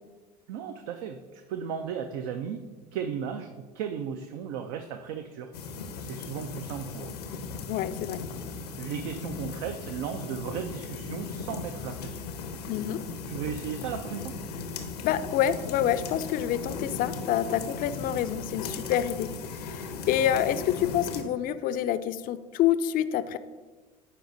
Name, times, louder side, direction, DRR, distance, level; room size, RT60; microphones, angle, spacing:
voice 1, 0.5-2.6 2.9-5.5 6.0-7.1 8.8-12.2 13.3-14.3, right 8 dB, 65° right, 7 dB, 0.5 m, -35 dB
sound 1, 5.5-21.2, left 4 dB, 85° left, 0.7 m, -37 dB
voice 2, 7.7-8.2 12.7-13.0 15.0-19.3 19.5-23.4, left 11 dB, 45° left, 13 dB, 0.4 m, -27 dB
9.9 x 4.1 x 2.6 m, 1.3 s
hypercardioid pair, 75°, 20 cm